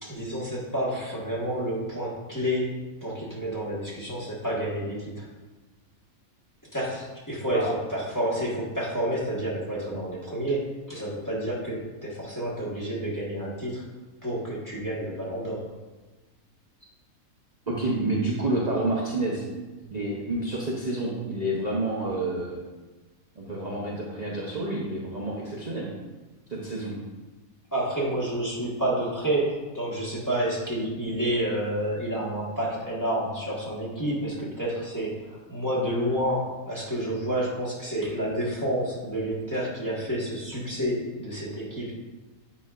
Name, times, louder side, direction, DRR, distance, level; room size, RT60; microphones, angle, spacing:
voice 1, 0.0-5.3 6.7-13.8 14.2-15.7 27.7-41.9, right 1 dB, 15° left, -6 dB, 1.4 m, -29 dB
voice 2, 17.7-19.4 19.9-22.6 23.4-25.9 26.5-27.0, right 2 dB, 35° right, -5 dB, 0.8 m, -29 dB
9.0 x 5.3 x 2.5 m, 1.2 s
omnidirectional pair, 1.5 m